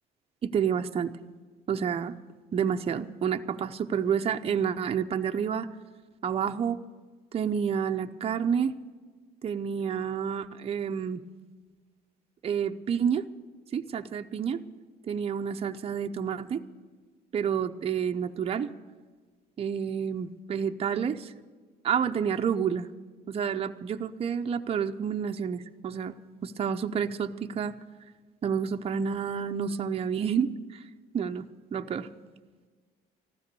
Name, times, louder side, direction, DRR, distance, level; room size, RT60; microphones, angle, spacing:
voice 1, 0.4-1.1 1.7-2.1 2.5-5.7 6.2-6.8 7.3-8.7 9.4-11.2 12.4-13.2 13.7-14.6 15.1-16.6 17.3-18.7 19.6-21.3 21.8-22.9 23.3-26.1 26.4-27.7 28.4-30.8 31.1-31.4 31.7-32.1, right 7 dB, 35° right, 6 dB, 0.6 m, -29 dB
14.5 x 12.5 x 6.8 m, 1.4 s
cardioid pair, 110°, 17 cm